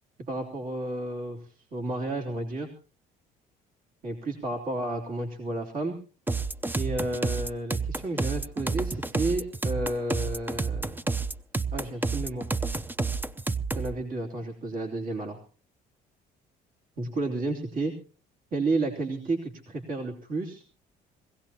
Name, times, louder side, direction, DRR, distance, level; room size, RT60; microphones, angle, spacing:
voice 1, 0.3-1.4 1.7-2.7 4.0-6.0 6.7-10.9 11.7-12.5 13.7-15.4 17.0-17.9 18.5-20.6, right 2 dB, 55° right, 2 dB, 3.4 m, -31 dB
sound 1, 6.3-13.9, right 3 dB, 10° right, 0.6 m, -29 dB
22.5 x 17.0 x 2.9 m, 0.37 s
cardioid pair, 110°, 17 cm